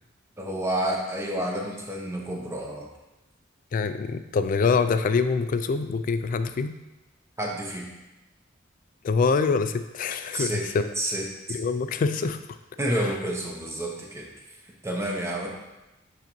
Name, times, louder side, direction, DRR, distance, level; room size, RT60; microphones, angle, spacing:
voice 1, 0.4-2.9 7.4-7.9 10.3-10.6 11.0-11.6 12.8-14.3 14.8-15.5, right 1 dB, 15° right, -1 dB, 0.8 m, -29 dB
voice 2, 3.7-6.8 9.0-10.9 11.5-12.6 13.0-13.1, left 4 dB, 45° left, 11 dB, 0.3 m, -25 dB
8.0 x 4.0 x 3.0 m, 1.0 s
head